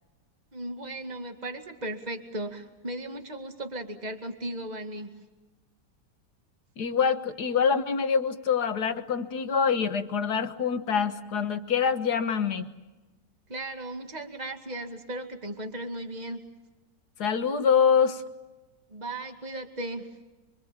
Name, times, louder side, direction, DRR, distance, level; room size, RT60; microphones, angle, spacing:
voice 1, 0.5-5.1 13.5-16.4 18.9-20.1, right 1 dB, 25° right, 5 dB, 2.4 m, -36 dB
voice 2, 6.8-12.7 17.2-18.2, left 6 dB, 65° left, 9 dB, 1.9 m, -25 dB
26.5 x 25.5 x 7.4 m, 1.1 s
omnidirectional pair, 1.9 m